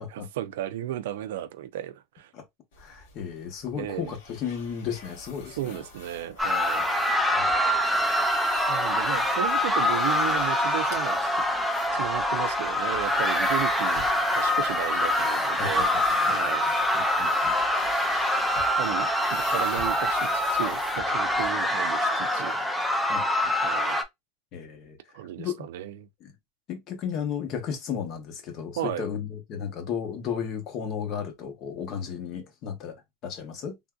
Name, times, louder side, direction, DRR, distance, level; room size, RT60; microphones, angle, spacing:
voice 1, 0.1-2.3 3.7-4.1 5.6-6.8 8.7-11.3 11.9-14.1 14.3-16.6 18.8-22.5 23.6-24.0 25.1-26.1 28.8-29.0, right 12 dB, 85° right, 0.4 m, -34 dB
sound 1, 2.7-21.5, left 3 dB, 80° left, 1.4 m, -45 dB
voice 2, 2.8-5.8 7.4-7.5 15.5-17.6 23.1-23.5 24.5-25.0 25.4-25.7 26.2-26.3 26.7-33.0 33.2-33.8, left 7 dB, 40° left, 0.9 m, -34 dB
sound 2, 6.4-24.0, left 1 dB, ahead, 0.4 m, -25 dB
3.5 x 2.6 x 2.3 m
supercardioid pair, 160°, 0 cm